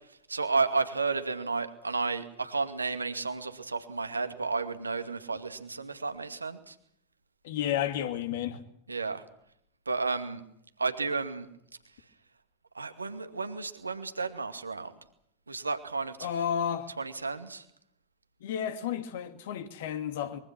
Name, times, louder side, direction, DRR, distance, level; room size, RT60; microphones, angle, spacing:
voice 1, 0.3-6.8 8.9-9.2 9.9-10.4 10.8-11.5 12.7-14.9 15.5-16.3 17.0-17.6, right 4 dB, 80° right, 2.3 m, -32 dB
voice 2, 7.4-8.6 16.2-16.9 18.4-20.4, left 9 dB, 55° left, 2.6 m, -32 dB
25.0 x 23.0 x 6.1 m
figure-of-eight pair, 90°, 0 cm